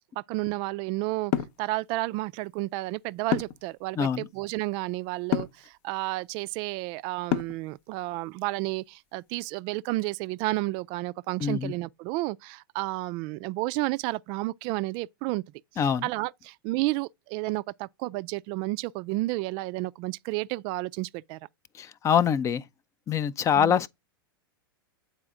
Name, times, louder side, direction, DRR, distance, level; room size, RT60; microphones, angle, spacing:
voice 1, 0.2-1.3 1.6-15.4 16.0-21.4 23.6-23.8, right 20 dB, 45° right, 0.4 m, -31 dB
sound 1, 1.3-1.6 3.3-3.7 5.3-5.6 7.3-7.7, left 10 dB, 50° left, 0.8 m, -27 dB
voice 2, 4.0-4.3 11.4-11.7 15.8-16.1 21.8-22.6 23.1-23.9, left 8 dB, 25° left, 0.5 m, -24 dB
8.7 x 4.2 x 3.7 m
hypercardioid pair, 105°, 12 cm